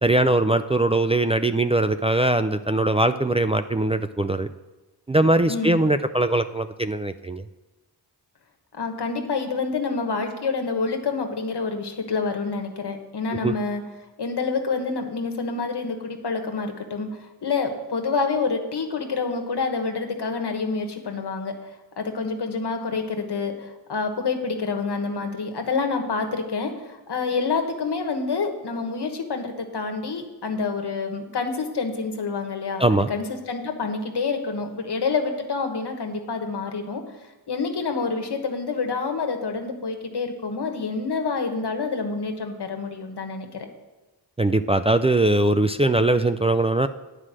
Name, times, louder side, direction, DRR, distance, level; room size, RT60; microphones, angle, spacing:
voice 1, 0.0-4.5 5.1-7.4 13.4-13.5 32.8-33.1 44.4-46.9, right 2 dB, 15° right, 8 dB, 0.3 m, -21 dB
voice 2, 8.7-13.8 14.2-21.7 22.0-32.8 33.1-37.0 37.5-43.7, left 4 dB, 75° left, 5 dB, 1.3 m, -27 dB
9.6 x 4.9 x 7.4 m, 1.1 s
cardioid pair, 55°, 41 cm